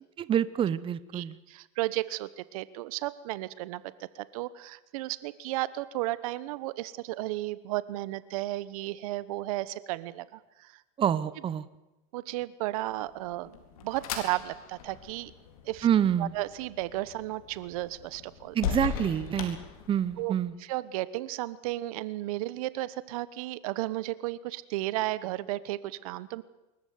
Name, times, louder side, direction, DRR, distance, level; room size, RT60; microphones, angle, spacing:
voice 1, 0.2-1.4 11.0-11.6 15.8-16.3 18.5-19.6 19.9-20.5, right 9 dB, 30° right, 16 dB, 1.0 m, -27 dB
voice 2, 1.1-3.8 4.1-10.8 12.1-15.3 15.6-15.9 16.2-18.6 20.2-20.3 20.6-26.4, right 17 dB, 75° right, 17 dB, 1.2 m, -34 dB
sound 1, 13.0-20.4, left 8 dB, 85° left, 4.2 m, -39 dB
24.5 x 14.5 x 9.5 m, 1.0 s
supercardioid pair, 120°, 18 cm